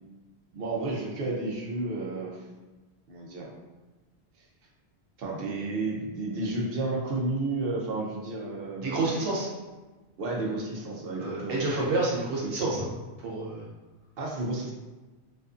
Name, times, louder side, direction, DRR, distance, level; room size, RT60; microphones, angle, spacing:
voice 1, 0.5-2.4 3.1-3.5 5.2-9.0 10.2-11.6 12.4-12.7 14.2-14.7, right 2 dB, 65° right, -2 dB, 0.7 m, -32 dB
voice 2, 8.8-9.5 11.2-12.9 13.2-13.6, right 2 dB, 85° right, -4 dB, 1.1 m, -28 dB
2.4 x 2.4 x 2.4 m, 1.2 s
omnidirectional pair, 1.1 m